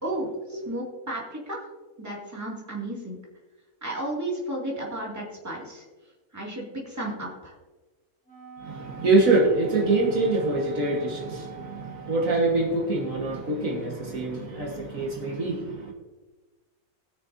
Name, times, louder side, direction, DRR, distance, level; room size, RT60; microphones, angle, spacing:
voice 1, 0.0-1.6 2.0-3.2 3.8-5.8 6.3-7.5, right 1 dB, 10° right, -4 dB, 2.2 m, -33 dB
Wind instrument woodwind instrument, 8.2-12.6, right 7 dB, 75° left, 3.5 m, -44 dB
voice 2, 8.6-15.9, right 2 dB, 65° right, -1 dB, 1.8 m, -25 dB
19.5 x 6.5 x 2.7 m, 1.2 s
omnidirectional pair, 1.6 m